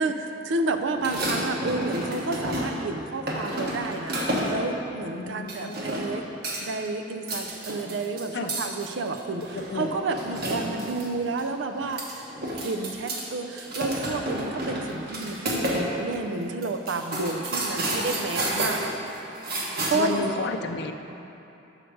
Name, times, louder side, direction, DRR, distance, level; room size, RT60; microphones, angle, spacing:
voice 1, 0.0-6.2 6.6-12.0 12.5-18.9 19.9-20.5, right 3 dB, 75° right, 6 dB, 0.5 m, -30 dB
sound 1, 0.9-2.9 3.3-4.7 5.5-6.2 6.4-6.9 7.2-11.1 11.4-11.5 11.8-13.2 13.5-15.9 16.1-16.2 16.6-20.2, right 1 dB, 55° right, 1.1 m, -30 dB
voice 2, 5.1-5.8 8.3-8.5 9.5-9.9 19.9-20.9, left 3 dB, 65° left, 6 dB, 0.4 m, -31 dB
6.5 x 4.5 x 6.4 m, 3.0 s
head